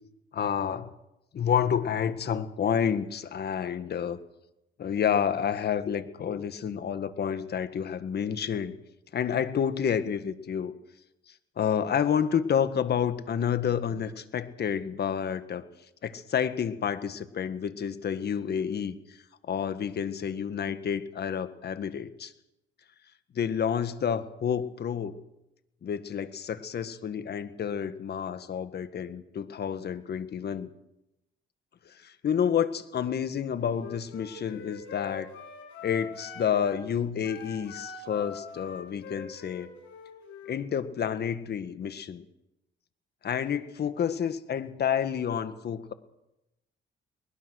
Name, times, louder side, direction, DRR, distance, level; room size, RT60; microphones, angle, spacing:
voice 1, 0.3-0.9 1.3-4.2 4.8-8.7 9.1-10.7 11.3-15.6 16.0-18.9 19.4-22.3 23.3-25.2 25.8-30.7 31.9-35.3 35.8-39.7 40.5-42.3 43.2-45.9, left 8 dB, 55° left, 11 dB, 1.6 m, -29 dB
Wind instrument woodwind instrument, 33.7-36.8 37.2-40.6, left 6 dB, 80° left, 6.4 m, -43 dB
23.0 x 20.0 x 6.4 m, 0.92 s
cardioid pair, 90°, 20 cm